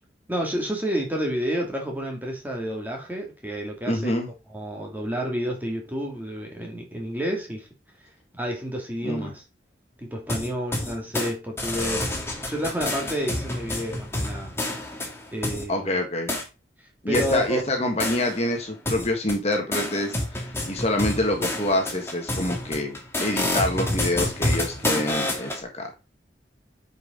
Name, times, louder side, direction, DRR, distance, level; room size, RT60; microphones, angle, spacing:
voice 1, 0.3-4.2 4.5-7.7 8.3-9.4 10.0-12.1 12.5-14.6 15.3-16.0 17.1-17.6, equal, 10° right, 2.4 m, -30 dB
voice 2, 3.9-4.3 9.0-9.3 15.7-16.3 17.0-25.9, left 1 dB, 35° left, 1.7 m, -26 dB
sound 1, 10.3-11.3 11.6-15.6 16.3-16.4 17.1-18.5 18.9-25.6, left 1 dB, 15° left, 2.0 m, -29 dB
9.3 x 5.6 x 3.9 m
head